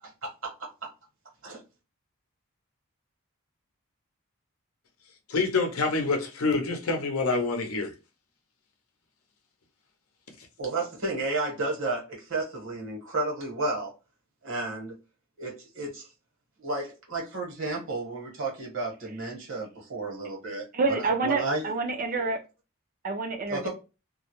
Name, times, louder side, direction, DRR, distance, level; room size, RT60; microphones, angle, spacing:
voice 1, 0.0-0.9 1.4-1.6 10.6-13.9 14.4-15.0 15.4-16.1 16.6-21.6 23.5-23.7, right 2 dB, 60° right, 1.1 m, -32 dB
voice 2, 5.3-7.9, left 3 dB, 80° left, 0.6 m, -26 dB
voice 3, 20.7-22.4 23.0-23.7, right 3 dB, 40° right, 0.4 m, -27 dB
2.3 x 2.0 x 2.9 m
head